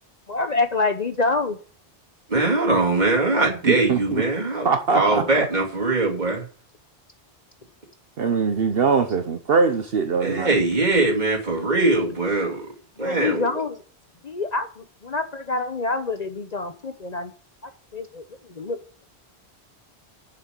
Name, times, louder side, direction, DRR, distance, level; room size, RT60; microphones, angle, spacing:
voice 1, 0.3-1.6 13.0-13.8 14.2-17.3 17.6-18.2 18.5-18.8, left 3 dB, 45° left, 0.9 m, -26 dB
voice 2, 2.3-4.7 4.9-6.4 10.2-12.7 13.0-13.5, right 2 dB, 40° right, 2.7 m, -21 dB
voice 3, 3.6-4.2 4.6-5.5 8.2-10.5, right 5 dB, 65° right, 1.1 m, -22 dB
7.2 x 6.8 x 8.0 m
omnidirectional pair, 1.1 m